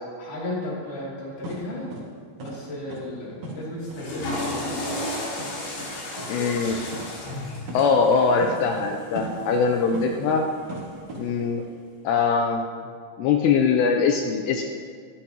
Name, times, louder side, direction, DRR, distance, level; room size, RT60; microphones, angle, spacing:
voice 1, 0.2-1.9 2.4-4.8, left 1 dB, 50° left, -6 dB, 3.9 m, -34 dB
sound 1, 1.4-1.6 1.9-2.0 2.4-2.5 2.9-3.0 3.4-3.6 3.9-4.0 4.4-4.5 4.9-5.0 5.4-5.5 5.8-5.9 6.2-6.3 6.5-6.7 6.9-7.0 7.3-7.4 7.7-8.1 8.4-8.9 9.2-10.4 10.7-11.2, right 2 dB, 50° right, 2.2 m, -37 dB
Water / Toilet flush, 3.8-10.1, left 1 dB, 70° left, 4.0 m, -34 dB
voice 2, 6.3-6.8 7.7-10.5 11.2-11.6 12.0-12.6 13.2-14.6, left 5 dB, 85° left, 3 dB, 2.5 m, -22 dB
12.5 x 12.0 x 2.9 m, 2.1 s
omnidirectional pair, 5.4 m